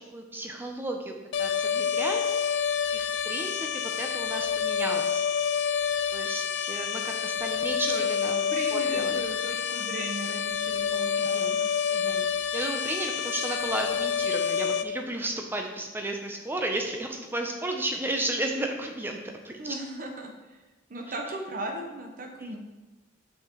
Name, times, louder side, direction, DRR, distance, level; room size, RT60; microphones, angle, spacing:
voice 1, 0.1-2.6 2.9-5.2 6.1-8.4 8.7-9.1 11.2-11.6 11.9-12.3 12.5-19.7 22.4-22.6, right 1 dB, 10° right, 3 dB, 0.6 m, -33 dB
sound 1, 1.3-14.8, left 7 dB, 60° left, 0.3 m, -28 dB
voice 2, 8.5-11.7 19.6-20.6 20.9-22.6, right 2 dB, 45° right, 2 dB, 0.8 m, -37 dB
6.3 x 5.7 x 3.0 m, 1.1 s
head